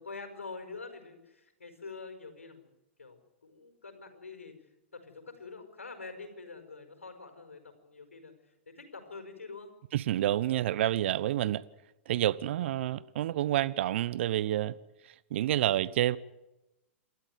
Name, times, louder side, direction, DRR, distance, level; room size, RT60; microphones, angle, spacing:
voice 1, 0.0-2.7 3.0-8.3 8.7-9.7, left 4 dB, 90° left, 5.0 m, -46 dB
voice 2, 9.9-11.6 12.1-14.8 15.3-16.2, right 13 dB, 60° right, 1.0 m, -28 dB
28.5 x 13.0 x 9.5 m
hypercardioid pair, 115°, 7 cm